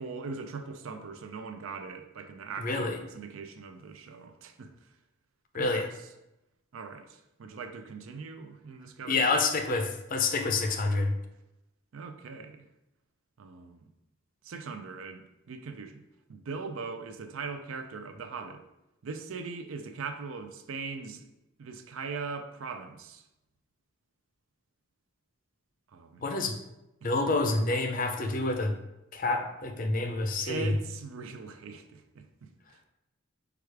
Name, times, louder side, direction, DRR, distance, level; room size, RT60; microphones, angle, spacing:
voice 1, 0.0-4.7 5.5-5.9 6.7-9.3 11.9-12.6 13.4-13.9 14.4-16.0 16.3-18.6 19.0-21.2 21.6-23.2 25.9-26.5 27.0-27.1 30.4-32.5, right 4 dB, 75° right, 7 dB, 0.4 m, -40 dB
voice 2, 2.6-3.0 5.5-5.9 9.0-11.1 26.2-26.6 27.0-28.7 29.1-30.8, left 3 dB, 40° left, 5 dB, 0.5 m, -28 dB
4.7 x 2.3 x 4.6 m, 0.91 s
head